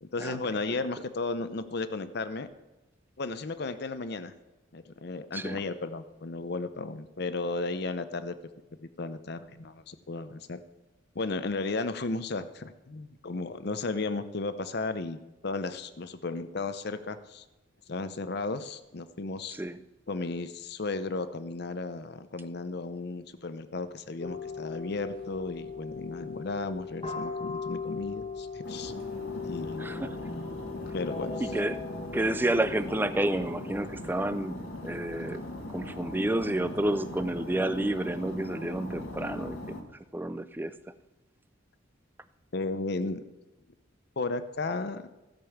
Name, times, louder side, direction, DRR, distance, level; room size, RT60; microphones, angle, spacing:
voice 1, 0.0-2.5 3.2-4.3 4.7-8.4 8.8-10.6 11.2-17.4 17.9-19.6 20.1-28.9 29.5-29.9 30.9-31.3 42.5-43.2 44.2-45.0, left 3 dB, 55° left, 12 dB, 0.7 m, -34 dB
voice 2, 5.3-5.6 19.5-19.8 29.8-30.2 31.4-31.8 32.1-35.4 35.7-39.8 40.1-40.7, right 1 dB, 10° right, 12 dB, 0.4 m, -30 dB
sound 1, 24.2-33.8, left 5 dB, 30° left, 1.4 m, -39 dB
sound 2, 28.6-39.8, left 1 dB, 85° left, 1.9 m, -40 dB
16.0 x 5.4 x 7.1 m, 1.1 s
head